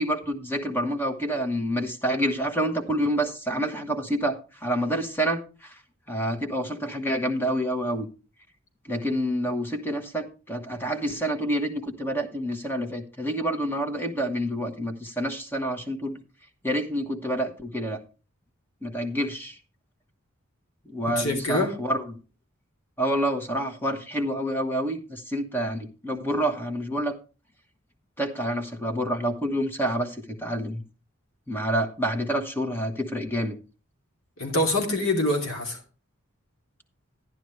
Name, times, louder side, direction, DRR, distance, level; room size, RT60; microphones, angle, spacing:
voice 1, 0.0-5.7 6.1-8.1 8.8-16.2 16.6-18.0 18.8-19.6 20.9-22.1 23.0-27.2 28.2-30.8 31.5-33.6, equal, 10° left, 6 dB, 1.2 m, -28 dB
voice 2, 21.1-21.7 34.4-35.8, left 1 dB, 90° left, 1 dB, 2.9 m, -25 dB
12.0 x 10.5 x 3.1 m, 0.34 s
head